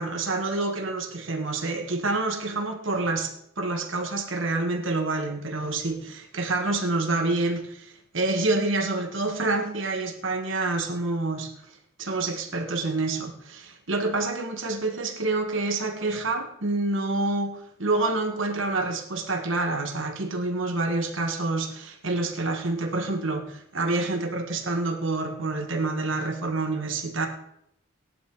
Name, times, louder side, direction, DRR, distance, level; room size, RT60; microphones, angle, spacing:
voice 1, 0.0-11.5 12.0-27.3, right 2 dB, 65° right, 4 dB, 1.7 m, -27 dB
18.0 x 11.0 x 3.9 m, 0.74 s
head